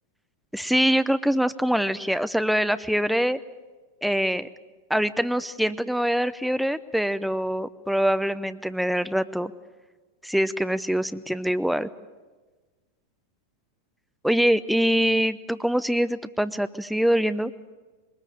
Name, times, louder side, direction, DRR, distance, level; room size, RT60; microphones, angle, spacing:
voice 1, 0.5-3.4 4.0-4.5 4.9-9.5 10.2-11.9 14.2-17.5, equal, ahead, 13 dB, 0.7 m, -24 dB
22.0 x 20.5 x 8.8 m, 1.3 s
figure-of-eight pair, 90°, 0 cm